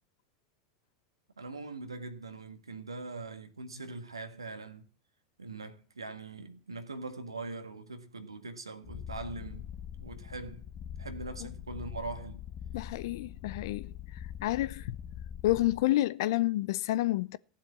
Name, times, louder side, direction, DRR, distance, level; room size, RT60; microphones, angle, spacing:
voice 1, 1.4-4.8 5.4-9.7 10.0-10.7 11.0-12.5, right 3 dB, 90° right, 1.7 m, -42 dB
Purr, 8.8-15.8, left 9 dB, 35° left, 1.6 m, -43 dB
voice 2, 12.7-13.9 14.4-15.0 15.4-17.4, left 16 dB, 60° left, 0.6 m, -29 dB
15.5 x 7.5 x 8.4 m
hypercardioid pair, 90°, 3 cm